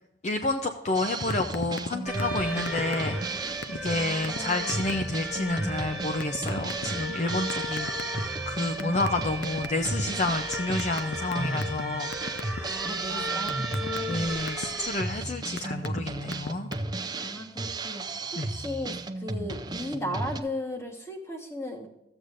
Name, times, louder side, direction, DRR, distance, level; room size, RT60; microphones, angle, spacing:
voice 1, 0.2-12.8 13.1-13.5 14.1-16.7 18.4-18.5, left 2 dB, 40° left, 5 dB, 0.5 m, -30 dB
Drum kit, 0.9-20.4, right 2 dB, 20° right, 0.5 m, -35 dB
sound 1, 1.3-1.9 2.2-2.4 2.7-3.3 3.6-3.8 4.2-4.4 4.7-5.0 6.2-6.9 7.5-8.4 8.8-10.0 10.5-11.8 12.1-12.6 13.0-14.7 15.3-16.0 16.3-16.7, left 4 dB, 80° left, 0.6 m, -35 dB
sound 2, 2.1-15.0, right 1 dB, 5° right, 1.1 m, -36 dB
voice 2, 3.9-4.8 12.6-14.4 17.2-18.0 18.3-21.9, left 1 dB, 15° left, 2 dB, 1.3 m, -36 dB
14.0 x 7.9 x 2.6 m, 0.90 s
head